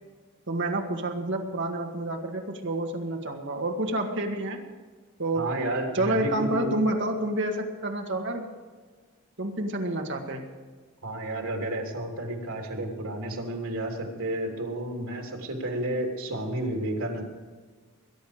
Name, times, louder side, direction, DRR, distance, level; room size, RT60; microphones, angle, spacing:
voice 1, 0.5-4.7 5.2-5.5 5.9-8.5 9.4-10.5, right 1 dB, 55° right, 3 dB, 1.9 m, -29 dB
voice 2, 5.3-6.7 11.0-17.2, right 1 dB, 85° right, 1 dB, 3.3 m, -31 dB
21.5 x 10.5 x 5.1 m, 1.4 s
head